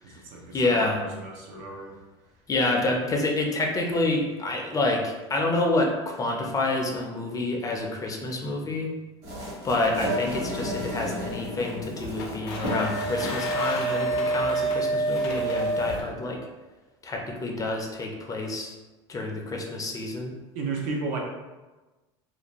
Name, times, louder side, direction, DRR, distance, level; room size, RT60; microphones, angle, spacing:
voice 1, 0.0-2.0 20.5-21.2, right 3 dB, 65° right, 0 dB, 0.6 m, -34 dB
voice 2, 0.5-1.0 2.5-8.9 9.6-16.4 17.0-18.7 19.1-20.3, left 2 dB, 25° left, 1 dB, 0.5 m, -28 dB
sound 1, 9.2-16.0, right 2 dB, 50° right, 1.2 m, -29 dB
sound 2, 12.0-16.1, left 2 dB, 85° left, 0.5 m, -37 dB
2.5 x 2.1 x 2.9 m, 1.2 s
supercardioid pair, 100°, 14 cm